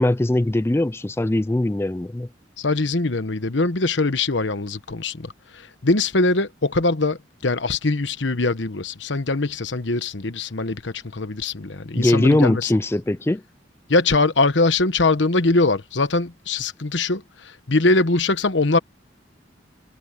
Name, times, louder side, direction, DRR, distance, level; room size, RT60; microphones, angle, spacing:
voice 1, 0.0-2.3 12.0-13.4, left 1 dB, 15° left, 0.4 m, -20 dB
voice 2, 2.6-12.7 13.9-18.8, left 3 dB, 75° left, 1.2 m, -22 dB
head